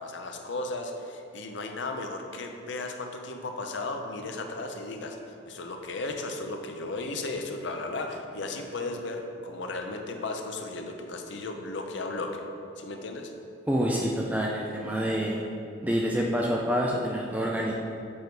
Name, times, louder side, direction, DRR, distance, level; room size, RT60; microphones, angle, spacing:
voice 1, 0.0-5.2 5.5-12.4 12.8-13.3, left 2 dB, 60° left, 4 dB, 0.6 m, -35 dB
voice 2, 13.7-15.4 15.8-17.7, equal, 10° right, -2 dB, 0.4 m, -27 dB
7.1 x 4.6 x 4.7 m, 2.6 s
head